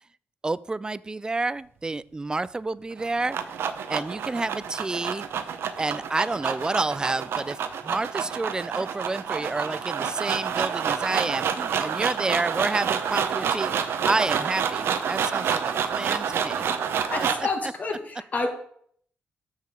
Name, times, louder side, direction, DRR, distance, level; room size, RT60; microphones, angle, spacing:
voice 1, 0.4-3.6 3.9-7.6 7.8-16.6 17.2-17.7, right 3 dB, 20° right, 18 dB, 0.3 m, -29 dB
sound 1, 2.9-17.5, right 7 dB, 75° right, 0.8 m, -28 dB
voice 2, 17.1-18.5, left 3 dB, 45° left, 4 dB, 1.8 m, -29 dB
6.7 x 6.6 x 6.4 m, 0.63 s
cardioid pair, 95°, 4 cm